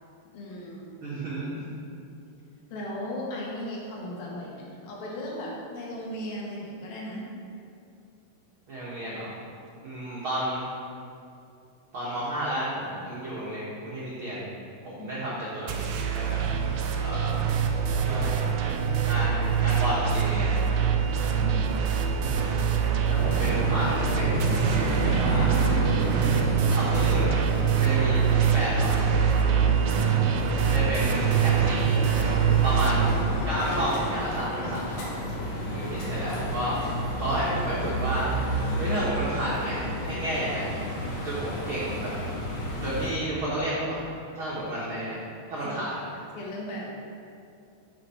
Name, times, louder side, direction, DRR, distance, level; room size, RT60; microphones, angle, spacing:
voice 1, 0.3-0.9 2.7-7.3 15.0-15.1 21.3-21.9 29.9-30.4 35.6-35.9 45.7-45.8 46.3-46.9, left 1 dB, 85° left, -4 dB, 3.4 m, -37 dB
voice 2, 1.0-1.5 8.7-9.4 9.8-10.6 11.9-14.4 14.9-15.8 16.1-16.4 17.0-17.5 18.0-18.5 19.0-20.8 22.2-22.6 23.1-24.7 25.0-25.6 26.7-27.4 27.8-29.2 30.7-32.0 32.6-33.1 33.4-35.2 35.7-38.3 38.8-40.8 41.2-42.1 42.8-43.9 44.4-45.2 45.5-45.9, right 1 dB, 50° right, -8 dB, 1.8 m, -31 dB
sound 1, 15.7-33.1, right 7 dB, 80° right, 1.8 m, -24 dB
sound 2, 23.1-43.1, equal, 55° left, 2.8 m, -32 dB
11.5 x 6.2 x 4.4 m, 2.6 s
omnidirectional pair, 4.1 m